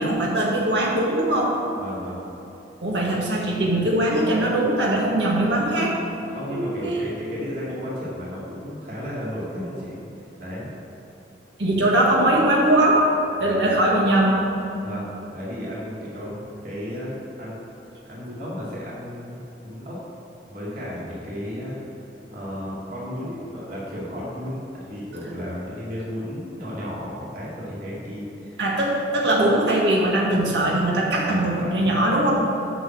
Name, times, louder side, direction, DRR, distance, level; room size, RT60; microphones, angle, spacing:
voice 1, 0.0-1.5 2.8-5.9 6.5-7.0 11.6-13.0 13.4-14.4 28.6-32.3, right 1 dB, 85° right, -3 dB, 1.8 m, -21 dB
voice 2, 1.8-2.2 5.4-5.6 6.2-10.0 10.4-10.7 13.4-13.7 14.8-16.3 16.6-17.6 18.1-20.0 20.5-21.7 22.3-28.6 31.3-31.8, equal, 55° right, -7 dB, 2.4 m, -33 dB
7.9 x 6.5 x 7.8 m, 3.0 s
head